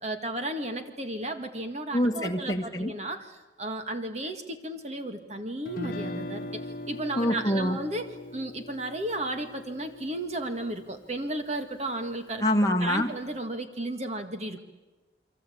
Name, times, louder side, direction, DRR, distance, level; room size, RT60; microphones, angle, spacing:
voice 1, 0.0-6.6 6.9-12.4 12.8-14.6, right 1 dB, 35° right, 7 dB, 1.7 m, -34 dB
voice 2, 1.9-2.9 7.2-7.8 12.4-13.1, equal, 20° left, 2 dB, 1.7 m, -25 dB
Guitar, 5.7-11.8, left 1 dB, 45° left, 1.4 m, -40 dB
28.5 x 23.5 x 8.5 m, 1.2 s
head